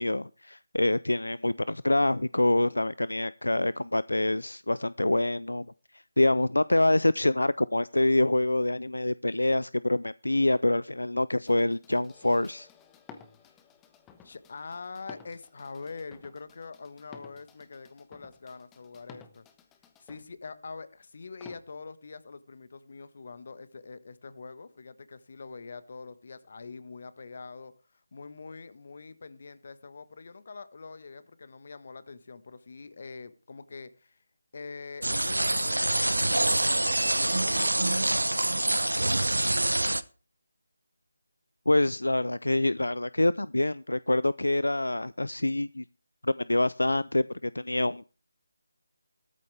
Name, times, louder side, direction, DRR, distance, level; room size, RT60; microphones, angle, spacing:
voice 1, 0.0-5.7 6.2-12.7 41.7-45.8 46.2-48.0, left 1 dB, 80° left, 0.5 m, -26 dB
sound 1, 11.5-20.3 21.4-21.6, left 6 dB, 10° left, 1.2 m, -54 dB
voice 2, 14.2-19.4 20.0-34.2 34.5-39.4, left 4 dB, 45° left, 1.6 m, -44 dB
sound 2, 35.0-40.0, right 1 dB, 80° right, 1.0 m, -26 dB
15.5 x 13.5 x 3.4 m
figure-of-eight pair, 160°, 0 cm